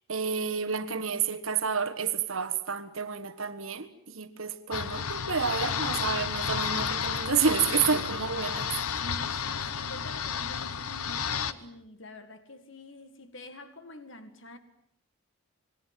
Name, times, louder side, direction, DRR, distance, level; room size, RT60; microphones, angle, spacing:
voice 1, 0.1-8.7, right 6 dB, 70° right, 1.5 m, -29 dB
sound 1, 4.7-11.5, left 7 dB, 85° left, 1.0 m, -32 dB
voice 2, 9.0-14.6, left 1 dB, 60° left, 1.9 m, -46 dB
27.0 x 21.0 x 7.5 m
head